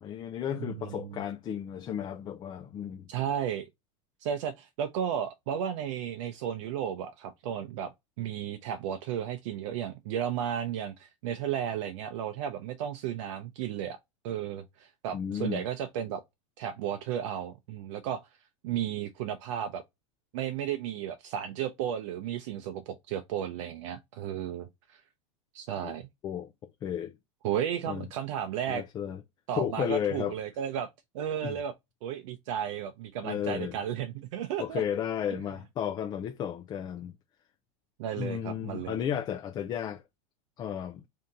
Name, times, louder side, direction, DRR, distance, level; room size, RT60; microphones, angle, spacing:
voice 1, 0.0-3.1 15.1-15.6 25.8-25.9 26.2-26.5 26.8-27.1 27.9-28.1 28.7-29.2 29.5-30.4 31.4-31.6 33.2-33.8 34.6-37.1 38.2-40.0 40.6-41.0, left 9 dB, 25° left, 0.4 m, -33 dB
voice 2, 0.6-1.2 3.1-3.7 4.2-7.9 8.2-14.0 14.2-16.2 16.6-18.3 18.6-19.8 20.3-25.0 25.5-26.1 27.4-28.8 29.5-30.9 31.1-31.7 32.0-34.8 38.0-38.9, right 9 dB, 65° right, 0.6 m, -34 dB
3.5 x 2.8 x 3.8 m
supercardioid pair, 140°, 17 cm